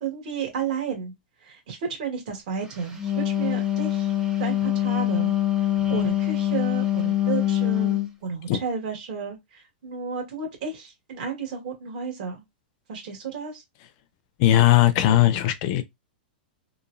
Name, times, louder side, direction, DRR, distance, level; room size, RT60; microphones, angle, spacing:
voice 1, 0.0-1.1 1.4-4.1 4.4-5.3 5.6-12.4 12.9-13.6, right 6 dB, 55° right, 1.6 m, -32 dB
Wind instrument woodwind instrument, 2.8-8.1, left 12 dB, 10° right, 0.7 m, -24 dB
voice 2, 14.4-15.8, left 13 dB, 45° left, 0.4 m, -18 dB
3.0 x 2.3 x 2.5 m
hypercardioid pair, 150°, 5 cm